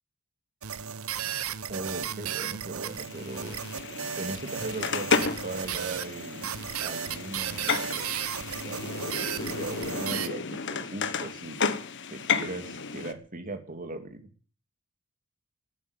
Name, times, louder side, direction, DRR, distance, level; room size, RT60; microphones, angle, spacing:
sound 1, 0.6-10.3, right 8 dB, 75° right, 0.9 m, -35 dB
voice 1, 1.7-3.6 4.2-6.5 6.8-8.0 8.6-11.8 12.1-14.2, right 2 dB, 40° right, 7 dB, 2.5 m, -38 dB
sound 2, 2.9-13.1, left 5 dB, 55° left, 1.4 m, -32 dB
13.5 x 9.3 x 9.9 m, 0.40 s
head